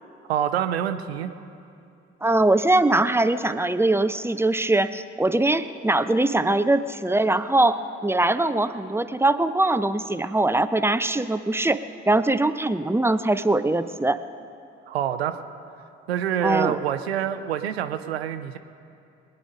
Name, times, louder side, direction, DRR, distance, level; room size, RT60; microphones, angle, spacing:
voice 1, 0.3-1.3 14.9-15.4 16.1-18.6, right 10 dB, 80° right, 10 dB, 0.7 m, -26 dB
voice 2, 2.2-14.2 16.4-16.8, right 2 dB, 10° right, 12 dB, 0.6 m, -22 dB
22.5 x 9.7 x 5.4 m, 2.6 s
figure-of-eight pair, 40°, 31 cm